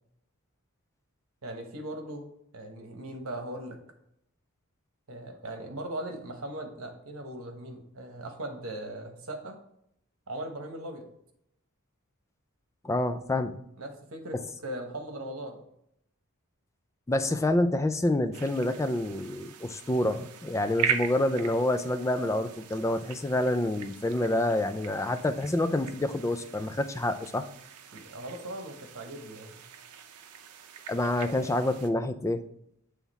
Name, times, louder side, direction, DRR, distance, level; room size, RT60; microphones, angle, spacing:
voice 1, 1.4-3.8 5.1-9.6 10.3-11.1 13.8-15.6 27.9-29.6, right 1 dB, 65° right, 4 dB, 1.1 m, -39 dB
voice 2, 12.8-13.6 17.1-27.5 30.9-32.4, left 1 dB, 15° left, 9 dB, 0.3 m, -27 dB
sound 1, 18.3-31.9, right 7 dB, 85° right, 0.6 m, -40 dB
7.4 x 3.5 x 4.1 m, 0.76 s
head